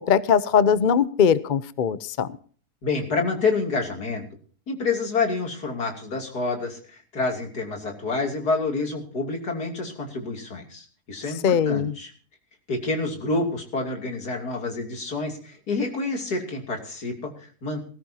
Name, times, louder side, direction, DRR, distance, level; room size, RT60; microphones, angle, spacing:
voice 1, 0.0-2.3 11.4-11.9, left 7 dB, 45° left, 15 dB, 0.7 m, -20 dB
voice 2, 2.8-4.2 4.7-12.1 12.7-17.8, left 3 dB, 85° left, 3 dB, 3.5 m, -28 dB
19.5 x 16.0 x 2.8 m, 0.43 s
omnidirectional pair, 1.6 m